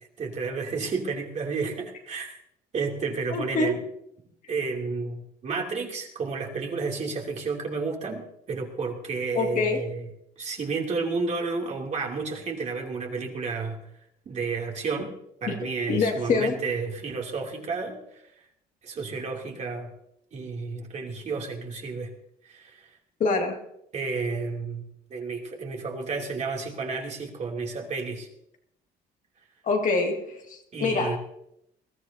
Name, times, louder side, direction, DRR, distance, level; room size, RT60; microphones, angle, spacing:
voice 1, 0.2-2.3 2.7-3.7 4.5-8.2 8.5-10.0 10.4-13.8 14.3-15.1 15.4-18.0 18.8-19.9 20.3-22.1 22.5-22.9 23.9-24.8 25.1-28.3 30.7-31.2, right 4 dB, 45° right, 0 dB, 2.8 m, -31 dB
voice 2, 3.3-3.7 9.3-9.8 15.5-16.6 23.2-23.6 29.6-31.2, left 3 dB, 50° left, 2 dB, 2.2 m, -25 dB
21.0 x 13.5 x 2.8 m, 0.76 s
cardioid pair, 110°, 17 cm